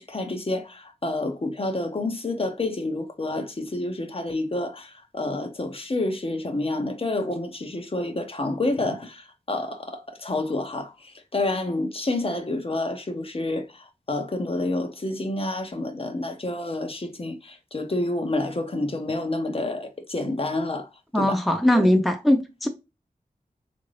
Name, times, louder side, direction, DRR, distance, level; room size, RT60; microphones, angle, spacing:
voice 1, 0.0-20.9 21.1-21.4 21.7-21.9, left 2 dB, 40° left, 0.7 m, -29 dB
voice 2, 21.1-22.7, left 1 dB, ahead, 0.5 m, -20 dB
3.7 x 2.6 x 3.1 m
wide cardioid pair, 60°, 15 cm